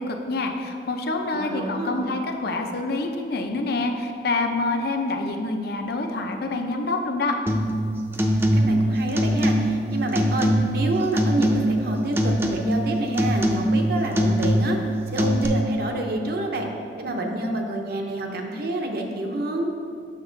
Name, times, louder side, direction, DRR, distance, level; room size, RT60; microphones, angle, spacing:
voice 1, 0.0-7.3, left 2 dB, 60° left, 4 dB, 0.6 m, -26 dB
voice 2, 1.3-2.2 8.3-14.8 15.1-16.7 17.0-19.7, right 1 dB, 60° right, 2 dB, 0.8 m, -28 dB
sound 1, 7.5-7.8 8.1-8.8 9.1-9.8 10.2-10.8 11.2-11.9 12.2-12.8 13.2-13.8 14.1-14.8 15.2-15.5, equal, 15° right, 0.5 m, -22 dB
6.6 x 6.3 x 3.9 m, 2.4 s
head